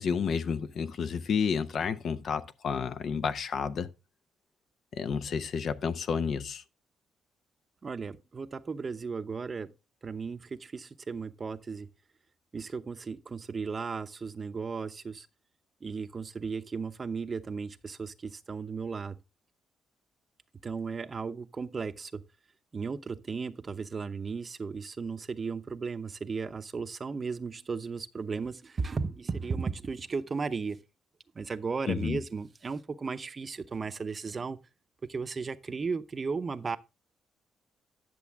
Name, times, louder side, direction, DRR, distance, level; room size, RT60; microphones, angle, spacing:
voice 1, 0.0-3.9 4.9-6.6 31.9-32.2, left 6 dB, 60° left, 0.8 m, -30 dB
voice 2, 7.8-9.7 10.0-11.9 12.5-15.3 15.8-19.2 20.6-22.2 22.7-30.8 31.3-34.6 35.1-36.8, right 5 dB, 35° right, 0.7 m, -35 dB
10.5 x 6.9 x 3.5 m
cardioid pair, 90°, 0 cm